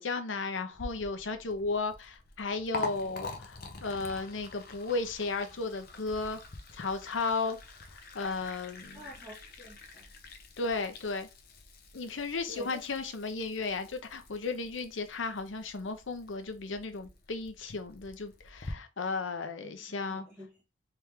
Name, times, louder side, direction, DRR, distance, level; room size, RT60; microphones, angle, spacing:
voice 1, 0.0-6.4 6.7-7.6 7.9-9.0 10.6-11.3 11.9-20.2, left 3 dB, 85° left, 0.7 m, -34 dB
Liquid, 0.7-18.7, left 3 dB, 50° left, 0.7 m, -46 dB
voice 2, 8.9-10.1 12.5-12.8 19.6-20.5, equal, 15° right, 1.8 m, -49 dB
3.5 x 3.2 x 3.1 m
head